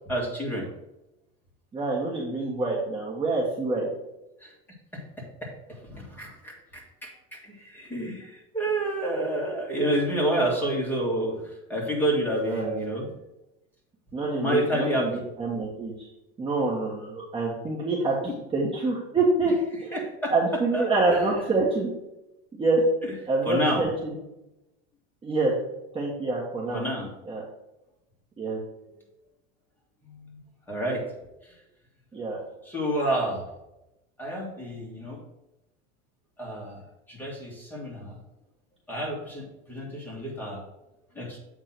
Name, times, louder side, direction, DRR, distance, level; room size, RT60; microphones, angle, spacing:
voice 1, 0.1-0.7 4.4-4.5 4.9-5.0 5.4-11.4 11.7-13.1 14.4-15.2 19.9-20.3 20.7-20.8 21.1-21.3 23.4-23.8 26.7-27.1 30.1-30.4 30.7-31.0 32.7-33.4 34.2-35.2 36.4-36.8 37.1-38.2 38.9-40.6 41.2-41.4, right 1 dB, 5° left, -3 dB, 2.2 m, -29 dB
voice 2, 1.7-3.9 12.5-12.8 14.1-16.1 16.4-19.5 19.8-20.0 20.3-21.9 22.6-22.8 23.3-24.1 25.2-25.5 25.9-26.8 27.2-27.5 28.4-28.6 32.1-32.4, right 3 dB, 15° right, -4 dB, 1.3 m, -26 dB
8.0 x 3.7 x 6.0 m, 0.91 s
supercardioid pair, 140°, 30 cm